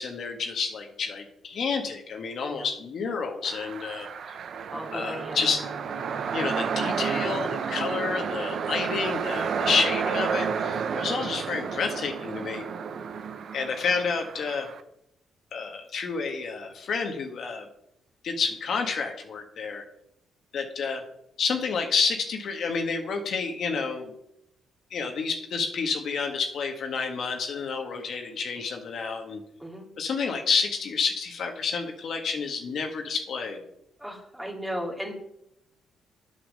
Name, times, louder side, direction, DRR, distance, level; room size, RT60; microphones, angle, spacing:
voice 1, 0.0-4.1 4.9-5.6 6.3-12.6 13.5-14.7 15.5-17.7 18.2-19.8 20.5-21.0 21.4-24.1 24.9-29.4 30.0-33.6, left 5 dB, 60° left, 3 dB, 1.6 m, -29 dB
sound 1, 3.4-14.8, right 6 dB, 60° right, 0.8 m, -31 dB
voice 2, 4.7-5.4 29.6-29.9 34.0-35.1, equal, 5° right, 0 dB, 2.4 m, -35 dB
8.4 x 7.4 x 6.6 m, 0.79 s
cardioid pair, 90°, 0 cm